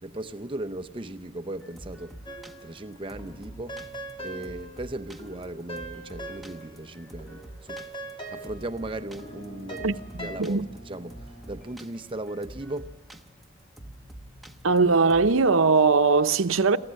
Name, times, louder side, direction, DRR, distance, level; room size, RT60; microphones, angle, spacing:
voice 1, 0.0-2.2 2.6-3.8 4.2-7.8 8.3-11.1 11.5-13.0, right 1 dB, 25° right, 0.7 m, -37 dB
sound 1, 1.6-15.4, right 1 dB, ahead, 1.1 m, -47 dB
sound 2, 2.3-2.9 3.2-6.9 7.2-10.4, right 1 dB, 25° left, 2.9 m, -41 dB
Bowed string instrument, 8.9-12.7, equal, 60° left, 3.4 m, -50 dB
voice 2, 9.8-10.7 14.6-16.8, right 4 dB, 75° right, 0.8 m, -21 dB
27.0 x 15.5 x 7.6 m
head